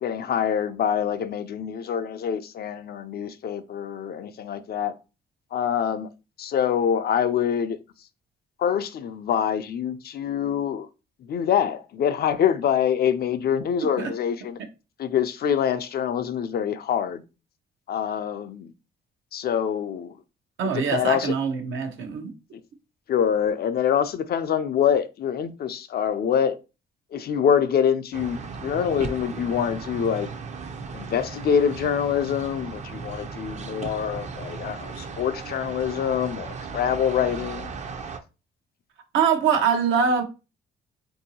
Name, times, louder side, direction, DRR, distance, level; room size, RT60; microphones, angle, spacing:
voice 1, 0.0-4.9 5.5-6.1 6.4-7.8 8.6-10.9 11.3-14.6 15.0-17.2 17.9-18.7 19.3-20.2 20.6-21.3 22.5-22.6 23.1-26.6 27.1-30.3 30.9-37.7, left 8 dB, 55° left, 0.4 m, -25 dB
voice 2, 20.6-22.3 39.1-40.2, right 6 dB, 80° right, 0.7 m, -23 dB
sound 1, 28.1-38.2, right 5 dB, 35° right, 0.5 m, -36 dB
3.7 x 2.7 x 2.7 m
cardioid pair, 90°, 20 cm